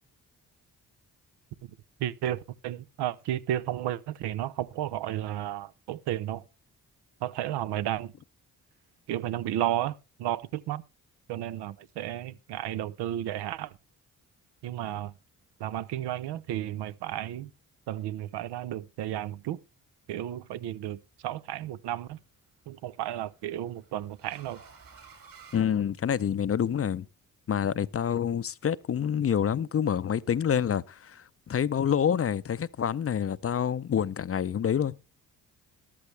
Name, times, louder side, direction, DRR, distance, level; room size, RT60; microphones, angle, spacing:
voice 1, 2.0-6.4 7.2-8.1 9.1-10.8 11.3-13.8 14.6-15.1 15.6-17.5 17.9-19.6 20.1-22.2 22.7-24.6, right 12 dB, 80° right, 0.7 m, -33 dB
sound 1, 20.6-21.1 22.5-26.5, right 5 dB, 55° right, 3.4 m, -54 dB
voice 2, 25.5-27.0 27.5-35.0, left 8 dB, 35° left, 0.5 m, -27 dB
13.5 x 12.0 x 3.3 m
supercardioid pair, 55°, 40 cm